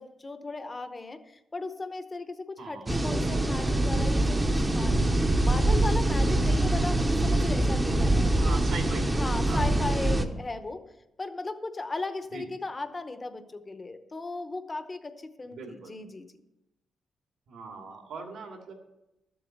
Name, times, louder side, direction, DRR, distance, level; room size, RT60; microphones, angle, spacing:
voice 1, 0.0-4.4 4.7-8.1 8.4-8.6 9.2-10.9 11.2-16.4, left 3 dB, 20° left, 9 dB, 0.8 m, -37 dB
voice 2, 2.6-2.9 8.4-9.1 9.5-9.6 12.3-12.5 15.5-15.9 17.5-18.7, right 4 dB, 80° right, 2 dB, 2.5 m, -40 dB
sound 1, 2.9-10.2, right 1 dB, 15° right, 0.8 m, -24 dB
13.0 x 7.8 x 6.6 m, 0.91 s
wide cardioid pair, 170°, 0 cm